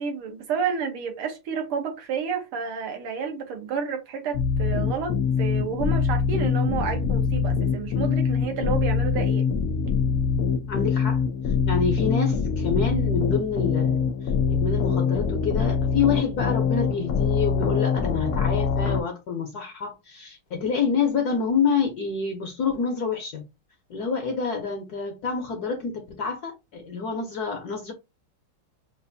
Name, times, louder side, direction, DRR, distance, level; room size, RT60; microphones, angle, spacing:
voice 1, 0.0-9.5, right 6 dB, 75° right, 1.9 m, -30 dB
sound 1, 4.3-19.0, left 6 dB, 80° left, 0.8 m, -24 dB
voice 2, 10.7-14.1 14.5-23.5 23.9-27.9, left 5 dB, 60° left, 1.1 m, -27 dB
5.9 x 2.5 x 2.6 m
omnidirectional pair, 2.4 m